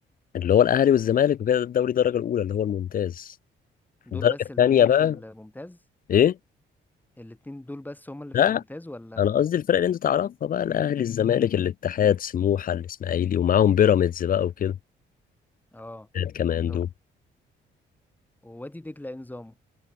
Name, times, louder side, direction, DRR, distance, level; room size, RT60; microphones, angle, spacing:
voice 1, 0.3-3.3 4.1-5.2 6.1-6.4 8.3-8.6 9.2-14.8 16.1-16.9, left 9 dB, 45° left, 0.5 m, -22 dB
voice 2, 4.0-5.8 7.2-9.3 15.7-16.1 16.7-16.9 18.4-19.6, left 1 dB, 10° left, 2.9 m, -40 dB
cardioid pair, 90°, 20 cm